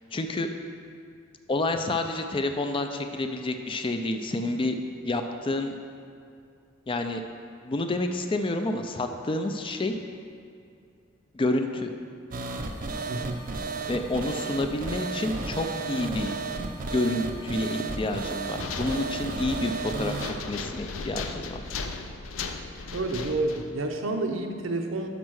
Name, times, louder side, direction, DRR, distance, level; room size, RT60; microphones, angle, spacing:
voice 1, 0.1-0.5 1.5-4.8 5.0-5.7 6.9-7.2 7.6-10.0 11.3-11.9 13.9-16.3 16.9-20.2 20.5-21.6, left 2 dB, 25° left, 5 dB, 0.4 m, -29 dB
sound 1, 12.3-20.3, right 3 dB, 45° right, 0.5 m, -33 dB
voice 2, 13.1-13.4 22.9-25.1, right 2 dB, 80° right, 4 dB, 0.7 m, -29 dB
sound 2, 18.6-23.8, left 4 dB, 90° left, 0.5 m, -37 dB
5.9 x 5.4 x 6.2 m, 2.4 s
head